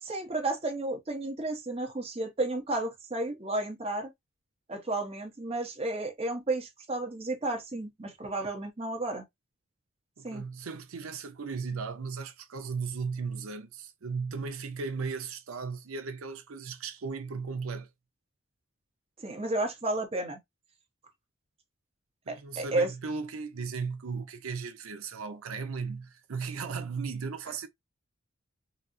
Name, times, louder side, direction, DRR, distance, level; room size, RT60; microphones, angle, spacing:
voice 1, 0.0-4.1 4.7-9.2 10.2-10.4 19.2-20.4 22.3-22.9 27.5-27.6, right 2 dB, 30° right, 0.9 m, -32 dB
voice 2, 10.2-17.9 22.3-27.7, right 5 dB, 75° right, 0.6 m, -36 dB
4.0 x 2.0 x 2.6 m
head